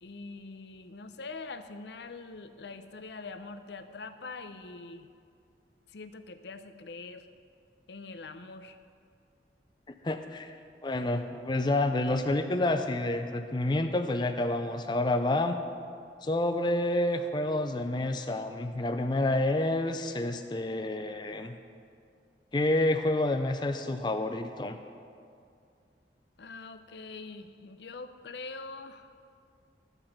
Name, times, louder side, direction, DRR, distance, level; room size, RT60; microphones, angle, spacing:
voice 1, 0.0-5.1 5.9-7.3 7.9-8.8 26.4-29.1, left 3 dB, 75° left, 10 dB, 0.6 m, -43 dB
voice 2, 10.0-10.5 10.8-15.6 16.2-21.6 22.5-24.8, left 1 dB, 25° left, 7 dB, 0.4 m, -28 dB
13.5 x 5.4 x 7.1 m, 2.4 s
head